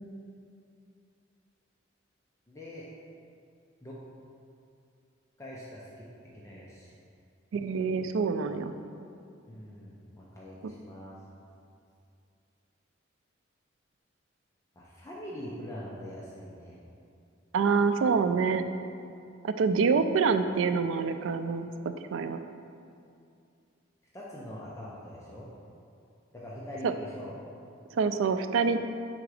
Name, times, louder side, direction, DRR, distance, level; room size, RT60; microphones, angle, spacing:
voice 1, 2.5-2.9 3.8-4.0 5.4-6.9 8.3-8.6 9.5-11.1 14.7-16.7 24.1-25.5 26.3-27.3, equal, 15° left, -6 dB, 0.6 m, -43 dB
voice 2, 7.5-8.7 17.5-18.6 19.4-21.7 22.1-22.4 26.8-26.9 27.9-28.8, right 5 dB, 90° right, 10 dB, 0.3 m, -26 dB
6.0 x 3.8 x 4.8 m, 2.5 s
head